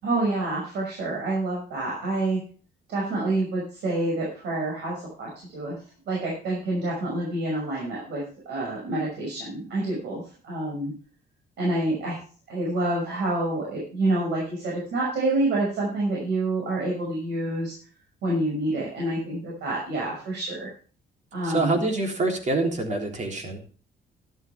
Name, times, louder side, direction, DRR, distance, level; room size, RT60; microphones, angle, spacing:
voice 1, 0.0-2.4 2.9-5.8 6.1-10.9 11.6-12.2 12.5-17.7 18.2-20.7 21.3-21.8, right 2 dB, 75° right, -3 dB, 5.9 m, -27 dB
voice 2, 21.4-23.6, right 2 dB, 40° right, 4 dB, 3.4 m, -26 dB
13.0 x 12.0 x 3.4 m, 0.40 s
cardioid pair, 130°, 18 cm